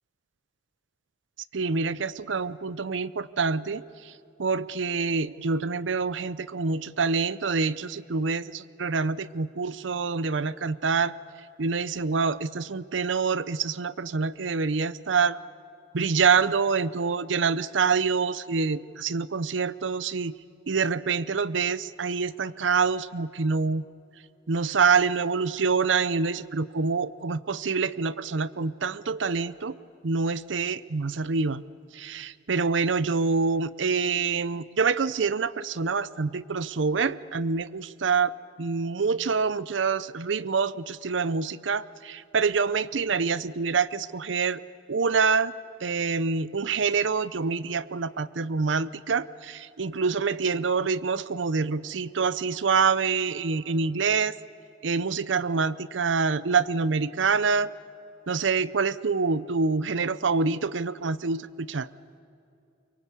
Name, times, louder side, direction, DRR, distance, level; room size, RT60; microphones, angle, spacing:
voice 1, 1.5-3.8 4.4-11.1 11.6-15.4 15.9-20.3 20.7-23.8 24.5-29.7 30.0-31.6 31.9-38.3 38.6-44.6 44.9-45.5 45.8-54.4 54.8-57.7 58.3-61.9, right 5 dB, 85° right, 17 dB, 0.7 m, -26 dB
24.0 x 23.5 x 8.3 m, 2.6 s
head